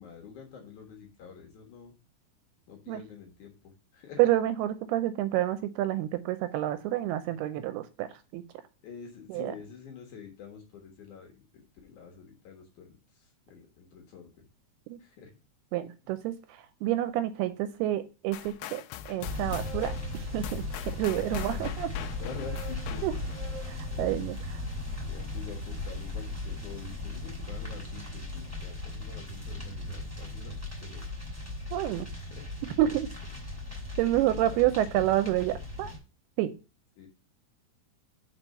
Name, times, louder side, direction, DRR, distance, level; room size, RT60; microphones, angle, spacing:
voice 1, 0.0-1.9 2.7-4.2 8.8-11.4 11.8-14.4 15.0-15.3 16.0-16.1 21.1-21.7 22.0-23.1 23.8-24.1 25.1-31.3 32.1-32.5 33.3-33.4 34.3-34.7 37.0-37.1, left 6 dB, 60° left, 1 dB, 2.4 m, -47 dB
voice 2, 4.2-8.4 9.3-9.5 14.9-15.0 15.7-18.8 19.1-21.9 23.0-23.1 23.7-24.6 31.7-32.1 32.8-33.1 34.0-35.9 36.4-36.5, right 13 dB, 80° right, 11 dB, 2.4 m, -29 dB
sound 1, 18.3-23.4, left 10 dB, 80° left, 2.5 m, -42 dB
sound 2, 19.2-36.0, left 2 dB, 5° right, 1.4 m, -37 dB
sound 3, 19.2-21.1 21.9-26.0, right 6 dB, 30° right, 1.9 m, -50 dB
6.1 x 4.4 x 6.5 m, 0.32 s
omnidirectional pair, 4.8 m